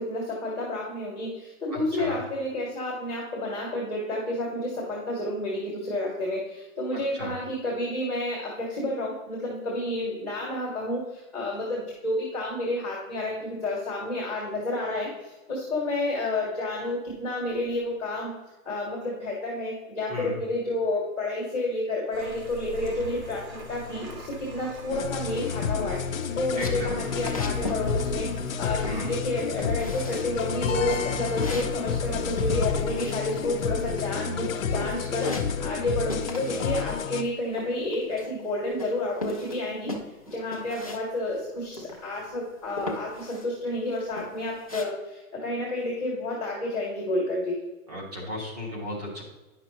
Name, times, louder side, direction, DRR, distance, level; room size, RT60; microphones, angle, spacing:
voice 1, 0.0-18.3 18.6-28.3 28.6-39.9 40.2-47.6, left 1 dB, 5° right, -15 dB, 0.8 m, -30 dB
voice 2, 1.7-2.2 6.9-7.4 20.1-20.4 26.6-27.0 28.8-29.2 47.9-49.2, left 1 dB, 30° right, -1 dB, 1.6 m, -35 dB
sound 1, 22.1-34.2, left 2 dB, 70° right, 2.0 m, -43 dB
sound 2, 24.9-37.2, left 6 dB, 65° left, 0.8 m, -30 dB
sound 3, 26.6-27.9 28.1-28.6 28.8-29.3 29.6-30.3 30.6-33.7 34.0-34.5 34.7-35.8 36.1-36.7 37.0-38.5 38.8-41.0 41.3-41.4 41.7-42.3 42.8-43.5 43.9-44.8, left 2 dB, 25° left, 0.4 m, -38 dB
9.9 x 5.8 x 3.0 m, 1.1 s
hypercardioid pair, 175°, 43 cm